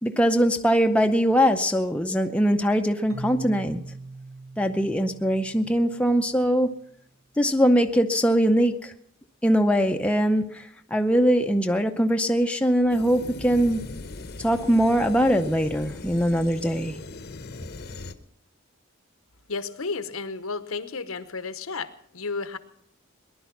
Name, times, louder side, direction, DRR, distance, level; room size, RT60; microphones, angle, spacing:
voice 1, 0.0-3.8 4.6-6.7 7.4-8.9 9.4-13.8 14.4-17.0, equal, 5° left, 0.6 m, -22 dB
Keyboard (musical), 3.1-6.8, right 2 dB, 60° right, 1.6 m, -42 dB
sound 1, 12.9-18.1, left 3 dB, 50° left, 0.9 m, -40 dB
voice 2, 19.5-22.6, left 4 dB, 80° left, 1.0 m, -32 dB
19.0 x 11.0 x 5.9 m
head